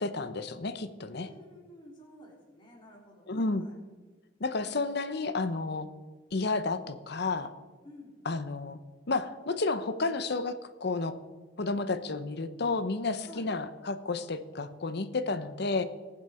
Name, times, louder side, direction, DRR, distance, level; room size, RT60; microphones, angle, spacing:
voice 1, 0.0-1.3 3.3-3.6 4.4-5.9 6.3-7.5 8.2-8.8 9.1-11.1 11.6-15.8, left 3 dB, 60° left, 12 dB, 0.8 m, -31 dB
voice 2, 1.1-3.8 7.8-8.2 13.2-13.5, left 1 dB, 25° left, -2 dB, 3.2 m, -51 dB
20.5 x 7.5 x 4.3 m, 1.4 s
head